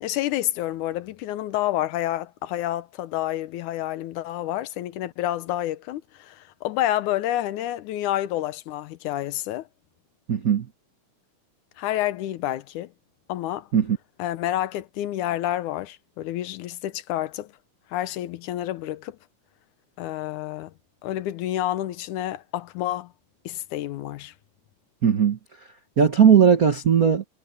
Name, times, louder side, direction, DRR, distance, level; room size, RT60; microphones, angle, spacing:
voice 1, 0.0-9.7 11.8-12.9 13.3-13.7 14.2-17.5 17.9-19.2 20.0-20.7 21.0-23.1 23.5-24.3, left 13 dB, 80° left, 2.3 m, -29 dB
voice 2, 10.3-10.7 13.7-14.0 25.0-25.4 26.0-27.2, right 7 dB, 70° right, 0.8 m, -18 dB
omnidirectional pair, 3.5 m